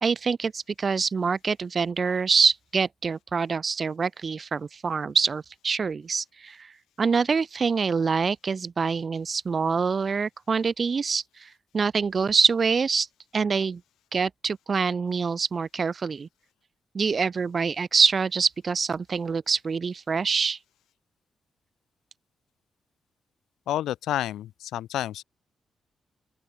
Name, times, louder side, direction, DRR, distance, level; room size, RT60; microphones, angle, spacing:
voice 1, 0.0-6.7 7.0-13.1 13.3-13.8 14.1-16.3 16.9-20.6, right 5 dB, 50° right, 0.4 m, -25 dB
voice 2, 23.7-25.2, left 12 dB, 85° left, 0.3 m, -29 dB
open air
supercardioid pair, 50°, 0 cm